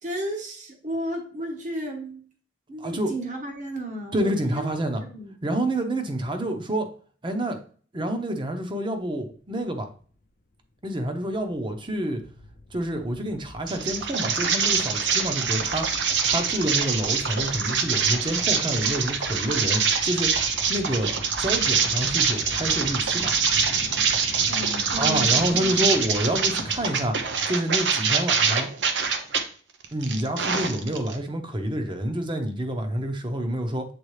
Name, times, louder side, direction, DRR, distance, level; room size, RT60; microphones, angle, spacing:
voice 1, 0.0-2.2 2.7-4.7 5.0-5.3 24.5-26.4, equal, 45° right, 1.2 m, -34 dB
voice 2, 2.8-3.1 4.1-5.0 5.4-6.9 7.2-7.6 7.9-9.9 10.8-12.2 12.7-15.9 16.2-20.3 20.7-23.3 25.0-27.2 27.5-28.7 29.9-33.9, right 1 dB, 30° right, 0.9 m, -28 dB
sound 1, 10.2-10.3 10.5-10.6 10.9-27.5, left 1 dB, 55° left, 0.6 m, -42 dB
sound 2, 13.7-29.4 29.8-31.2, right 6 dB, 90° right, 0.8 m, -24 dB
7.9 x 3.6 x 3.3 m
head